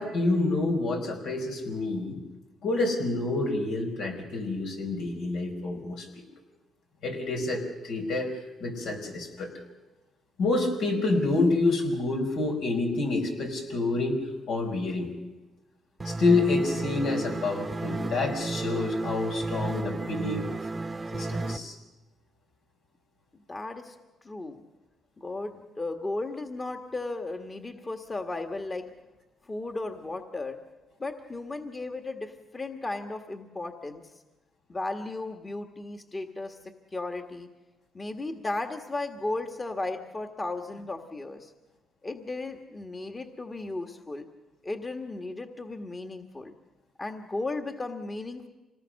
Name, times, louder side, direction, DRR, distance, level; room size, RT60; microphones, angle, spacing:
voice 1, 0.0-2.2 2.6-6.2 7.0-8.3 8.6-9.5 10.4-14.2 14.5-15.1 16.0-20.5 21.1-21.8, left 2 dB, 85° left, 2 dB, 4.8 m, -28 dB
sound 1, 16.0-21.6, right 2 dB, 25° right, 0.9 m, -33 dB
voice 2, 23.5-23.9 24.2-24.6 25.2-28.9 29.5-30.6 31.0-34.0 34.7-36.6 36.9-37.5 37.9-41.5 42.0-44.3 44.6-46.5 47.0-48.5, left 2 dB, 25° left, 5 dB, 1.5 m, -35 dB
26.0 x 19.0 x 6.5 m, 1.1 s
cardioid pair, 90°, 0 cm